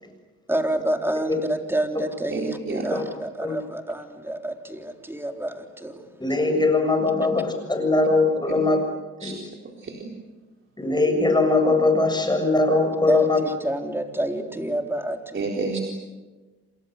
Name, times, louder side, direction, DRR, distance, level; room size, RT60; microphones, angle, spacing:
voice 1, 0.5-6.0 13.1-15.4, right 1 dB, 10° right, 3 dB, 3.9 m, -28 dB
voice 2, 2.3-2.9 8.5-8.6 9.2-9.4 9.8-10.1 15.3-15.8, right 3 dB, 40° right, 0 dB, 4.2 m, -29 dB
voice 3, 6.2-8.8 9.2-9.3 10.8-13.4, left 3 dB, 15° left, 4 dB, 7.3 m, -21 dB
29.5 x 27.0 x 6.8 m, 1.3 s
cardioid pair, 90°, 30 cm